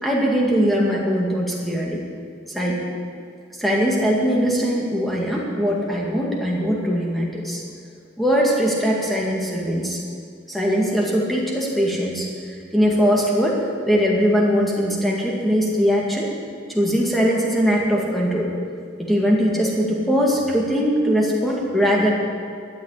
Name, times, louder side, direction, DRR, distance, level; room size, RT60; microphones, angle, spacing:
voice 1, 0.0-2.0 2.5-2.8 3.6-7.6 8.2-10.0 10.5-12.3 12.7-16.3 16.7-18.5 19.0-22.1, equal, ahead, -3 dB, 2.1 m, -21 dB
12.5 x 7.5 x 9.8 m, 2.3 s
head